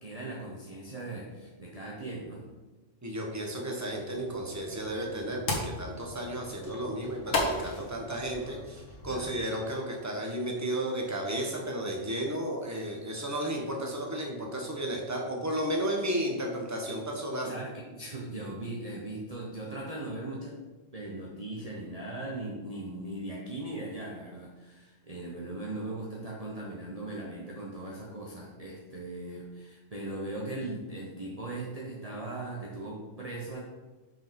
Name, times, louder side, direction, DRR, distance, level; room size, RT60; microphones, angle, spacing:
voice 1, 0.0-2.5 6.8-6.9 9.1-9.4 17.4-20.6 20.9-33.6, right 2 dB, 30° right, -3 dB, 1.0 m, -39 dB
voice 2, 3.0-17.5, right 1 dB, 15° right, 0 dB, 1.2 m, -33 dB
sound 1, 3.9-9.3, left 2 dB, 75° left, 1.7 m, -36 dB
6.0 x 5.4 x 5.3 m, 1.2 s
omnidirectional pair, 1.3 m